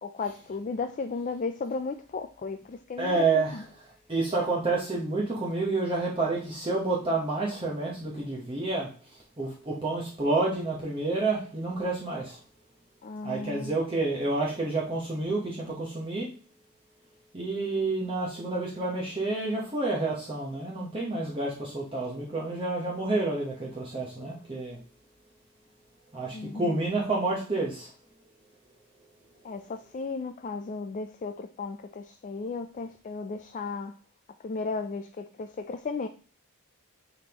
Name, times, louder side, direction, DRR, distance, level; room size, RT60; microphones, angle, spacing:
voice 1, 0.0-3.6 13.0-13.8 26.3-26.8 29.4-33.9 34.4-36.1, left 4 dB, 35° left, 0.3 m, -35 dB
voice 2, 3.0-3.6 4.1-12.4 13.2-16.3 17.3-24.8 26.1-27.9, right 3 dB, 25° right, 1.0 m, -29 dB
9.7 x 3.6 x 2.9 m
head